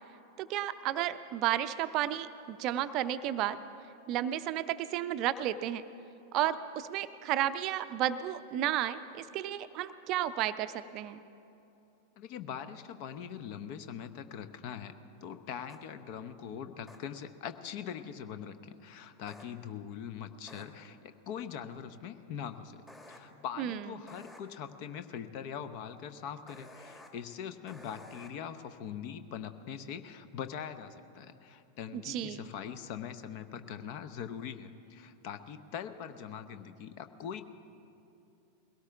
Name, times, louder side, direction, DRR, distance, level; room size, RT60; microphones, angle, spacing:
voice 1, 0.4-3.6 4.1-5.8 6.3-11.2 23.6-23.8 31.9-32.5, right 12 dB, 40° right, 12 dB, 0.5 m, -32 dB
voice 2, 12.2-14.9 15.2-22.8 23.1-37.4, left 8 dB, 45° left, 10 dB, 0.8 m, -42 dB
sound 1, 15.7-15.8 16.9-17.0 19.3-19.4 20.5-20.6 22.9-23.2 24.1-24.4 26.5-27.1 27.7-28.3, left 2 dB, 15° left, 1.9 m, -51 dB
21.5 x 17.5 x 3.5 m, 2.8 s
figure-of-eight pair, 90°, 0 cm